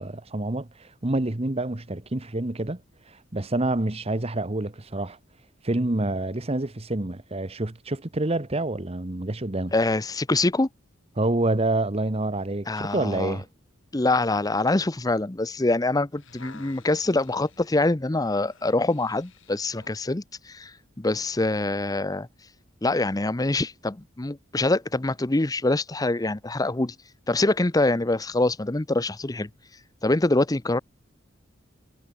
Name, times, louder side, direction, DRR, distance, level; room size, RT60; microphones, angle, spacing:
voice 1, 0.0-2.8 3.1-5.2 5.6-9.7 11.2-13.5, right 2 dB, 30° right, 1.1 m, -27 dB
voice 2, 9.7-10.7 12.7-13.4 13.9-22.3 22.8-27.0 27.3-29.5 30.0-30.8, left 2 dB, 20° left, 0.7 m, -25 dB
sound 1, 15.9-20.0 20.7-20.8, left 5 dB, 65° left, 3.8 m, -53 dB
head